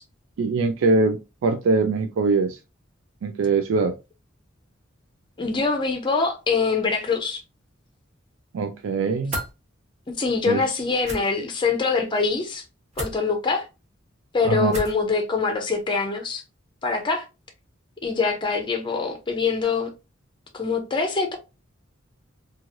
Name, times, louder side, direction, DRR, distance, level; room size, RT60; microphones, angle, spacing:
voice 1, 0.4-2.6 3.2-4.0 8.5-9.4 10.4-10.6 14.4-14.8, right 3 dB, 75° right, 0.3 m, -22 dB
voice 2, 5.4-7.4 10.2-12.6 13.0-13.7 14.3-16.4 16.8-17.2 18.0-19.9 20.5-21.4, left 4 dB, 25° left, 0.6 m, -24 dB
sound 1, 9.3-9.5 11.0-11.2 12.9-13.2 14.7-15.0, right 1 dB, 35° right, 1.1 m, -31 dB
3.1 x 2.4 x 2.5 m
head